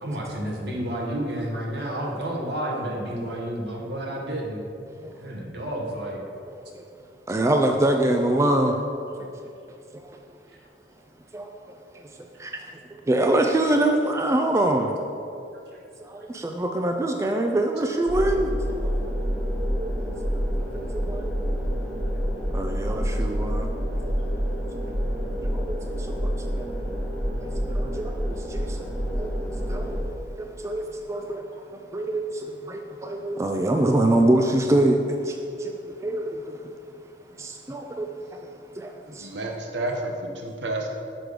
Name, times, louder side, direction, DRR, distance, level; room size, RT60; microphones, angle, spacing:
voice 1, 0.0-4.6 5.0-6.2 7.3-7.4 10.5-10.6 15.7-15.8, right 1 dB, 65° right, -1 dB, 1.2 m, -31 dB
voice 2, 7.3-8.8 9.2-9.3 9.9-10.0 11.3-11.5 12.4-14.9 16.0-18.5 18.8-19.0 19.8-19.9 20.7-21.3 22.5-23.7 25.4-26.7 27.4-28.8 29.2-29.3 29.7-30.0 30.4-35.7 36.0-36.6 37.4-38.4 38.8-39.3, right 1 dB, 15° right, 3 dB, 0.3 m, -25 dB
sound 1, 18.1-30.0, equal, ahead, 1.0 m, -28 dB
voice 3, 39.2-40.9, right 2 dB, 85° right, 2 dB, 0.7 m, -30 dB
6.1 x 4.9 x 5.0 m, 2.6 s
head